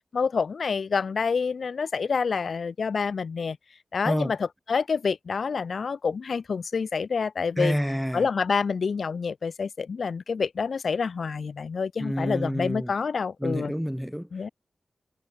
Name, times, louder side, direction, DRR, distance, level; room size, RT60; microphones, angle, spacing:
voice 1, 0.1-3.6 3.9-7.8 8.1-13.7 14.3-14.5, left 5 dB, 65° left, 2.1 m, -27 dB
voice 2, 7.6-8.3 12.0-12.9 13.4-14.3, equal, ahead, 1.1 m, -28 dB
wide cardioid pair, 135°, 0 cm